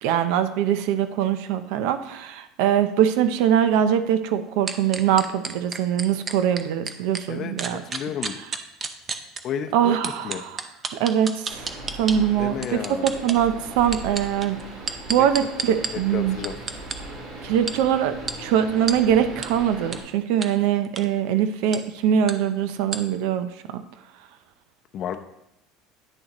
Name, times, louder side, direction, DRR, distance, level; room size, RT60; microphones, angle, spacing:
voice 1, 0.0-7.8 9.7-10.5 10.9-11.7 12.0-14.6 15.1-16.4 17.4-23.8, right 9 dB, 75° right, 10 dB, 0.6 m, -22 dB
sound 1, 4.7-7.2 7.6-9.4 10.0-12.2 12.6-13.4 13.8-15.9 16.4-16.9 17.7-17.8 18.3-18.4 18.9-19.0 19.4-19.5 19.9-20.0 20.4-20.5 20.8-21.0 21.7-21.8 22.3-22.4 22.9-23.0, right 5 dB, 25° right, 0.6 m, -30 dB
voice 2, 7.8-8.3 9.4-10.4 12.4-13.1 15.2-15.3 16.1-16.5 24.9-25.2, left 8 dB, 45° left, 6 dB, 0.7 m, -31 dB
sound 2, 11.5-20.0, right 1 dB, 60° right, 3.1 m, -39 dB
9.7 x 6.4 x 3.0 m, 0.83 s
cardioid pair, 135°, 0 cm